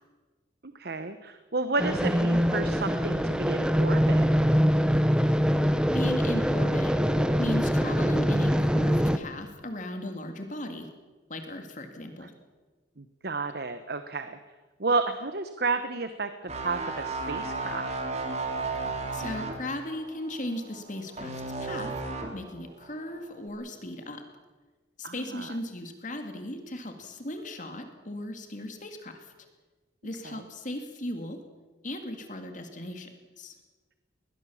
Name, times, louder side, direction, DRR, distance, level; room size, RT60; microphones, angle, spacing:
voice 1, 0.6-4.3 12.2-12.3 13.0-14.4 14.8-16.3 16.6-17.9 25.0-25.5 30.2-30.4, right 3 dB, 55° right, 10 dB, 1.1 m, -31 dB
sound 1, 1.8-9.2, equal, 5° right, 0.9 m, -24 dB
voice 2, 5.9-10.9 11.3-12.3 19.1-21.9 22.3-24.2 25.0-29.3 30.0-31.4 31.8-33.1 33.4-33.5, left 1 dB, 40° left, 5 dB, 2.4 m, -37 dB
sound 2, 16.5-22.5 22.8-23.1, right 3 dB, 35° right, 2.9 m, -34 dB
22.0 x 19.5 x 7.3 m, 1.3 s
head